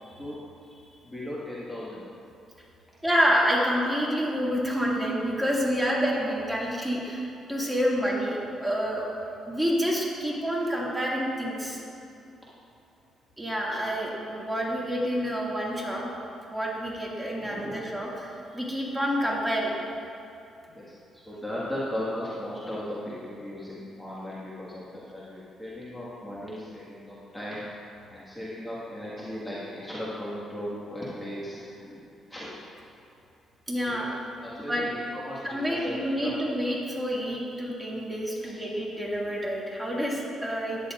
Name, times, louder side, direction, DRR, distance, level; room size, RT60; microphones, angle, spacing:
voice 1, 1.0-2.1 17.4-17.9 20.7-20.9 21.1-32.0 32.3-32.5 33.8-34.1 34.4-36.3 38.4-38.5, left 1 dB, 10° left, -8 dB, 1.7 m, -37 dB
voice 2, 3.0-9.1 9.5-11.8 13.4-16.0 16.5-19.8 33.7-34.2 34.7-34.9 35.4-40.8, equal, 5° right, -5 dB, 2.2 m, -28 dB
13.5 x 9.9 x 2.5 m, 2.6 s
cardioid pair, 90°, 0 cm